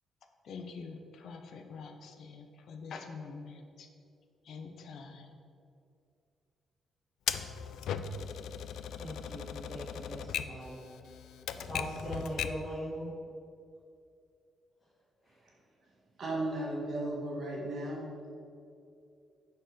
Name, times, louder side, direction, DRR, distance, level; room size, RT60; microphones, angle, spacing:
voice 1, 0.4-3.9 4.5-5.3, left 4 dB, 55° left, 5 dB, 0.7 m, -45 dB
Typewriter, 7.3-12.7, left 8 dB, 75° left, 0.3 m, -38 dB
voice 2, 9.0-10.8 11.7-13.1, equal, 10° left, -11 dB, 1.7 m, -40 dB
voice 3, 16.2-18.1, right 1 dB, 40° right, -2 dB, 1.6 m, -35 dB
6.5 x 4.6 x 6.6 m, 2.4 s
cardioid pair, 170°, 0 cm